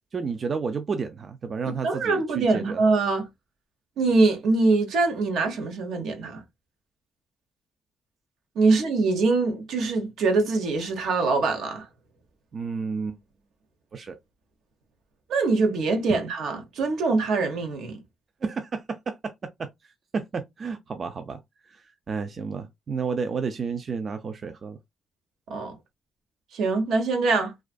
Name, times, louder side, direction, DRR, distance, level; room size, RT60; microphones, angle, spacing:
voice 1, 0.1-2.8 12.5-13.2 13.9-14.2 16.1-16.2 18.4-24.8, right 5 dB, 45° right, 0.3 m, -31 dB
voice 2, 1.8-3.3 4.0-6.4 8.6-11.9 15.3-18.0 25.5-25.7 26.5-27.5, right 3 dB, 75° right, 0.7 m, -23 dB
2.5 x 2.3 x 2.2 m
cardioid pair, 90°, 0 cm